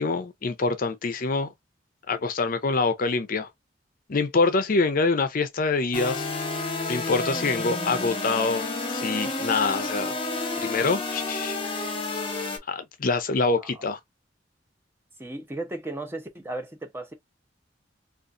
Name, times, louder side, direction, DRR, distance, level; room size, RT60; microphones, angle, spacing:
voice 1, 0.0-1.5 2.1-3.5 4.1-6.3 6.6-10.2 10.6-12.0 12.7-14.0, left 3 dB, 50° left, 0.6 m, -25 dB
sound 1, 5.9-12.6, left 3 dB, 30° left, 0.9 m, -30 dB
voice 2, 13.6-13.9 15.2-17.1, right 2 dB, 15° right, 0.7 m, -35 dB
3.8 x 2.5 x 2.5 m
head